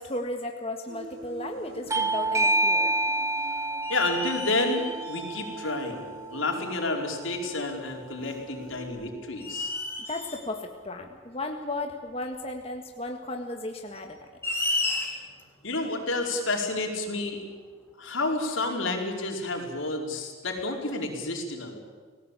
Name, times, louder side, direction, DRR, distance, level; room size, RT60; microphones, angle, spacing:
voice 1, 0.0-2.9 10.1-14.2, left 2 dB, 30° left, 3 dB, 1.7 m, -35 dB
Human voice, 0.9-8.9, right 2 dB, 80° right, 5.6 m, -45 dB
sound 1, 1.2-1.3 1.8-2.6 2.9-3.0 3.8-5.6 6.6-6.7 8.6-8.8 9.4-10.5 12.3-12.4 13.9-15.4, left 2 dB, 10° left, 3.9 m, -33 dB
Bell / Doorbell, 1.9-7.1, right 2 dB, 15° right, 0.8 m, -28 dB
voice 2, 3.9-6.0 6.3-9.7 15.6-17.4 18.0-21.8, left 2 dB, 80° left, 1 dB, 4.9 m, -30 dB
30.0 x 19.0 x 8.4 m, 1.5 s
head